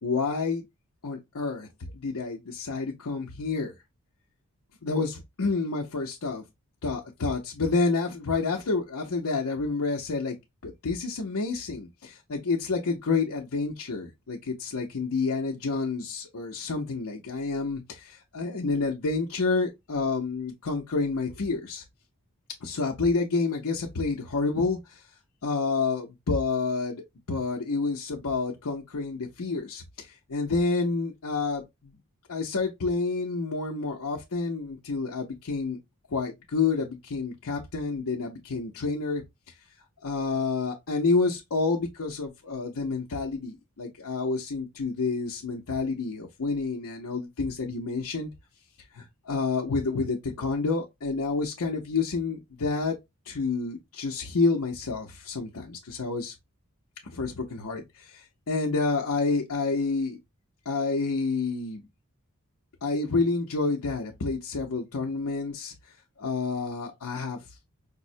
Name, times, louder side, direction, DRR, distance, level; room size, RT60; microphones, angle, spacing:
voice 1, 0.0-0.6 1.0-1.7 1.9-3.7 4.8-6.4 6.8-10.4 10.6-21.8 22.6-25.0 25.4-31.9 32.3-35.8 36.1-39.2 40.0-48.3 48.9-53.0 53.3-56.3 57.0-60.2 60.7-61.8 62.8-65.7 66.2-67.4, left 4 dB, 75° left, 0.7 m, -29 dB
5.2 x 2.1 x 2.6 m
head